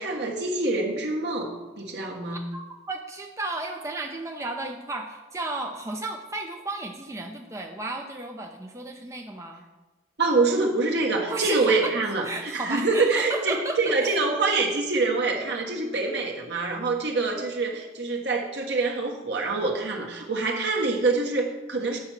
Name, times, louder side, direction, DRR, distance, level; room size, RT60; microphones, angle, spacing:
voice 1, 0.0-2.5 10.2-22.0, right 3 dB, 70° right, 0 dB, 1.5 m, -25 dB
voice 2, 2.5-9.6 11.3-11.9 12.2-14.1, right 2 dB, 15° right, 2 dB, 0.5 m, -33 dB
7.7 x 5.9 x 5.8 m, 1.2 s
head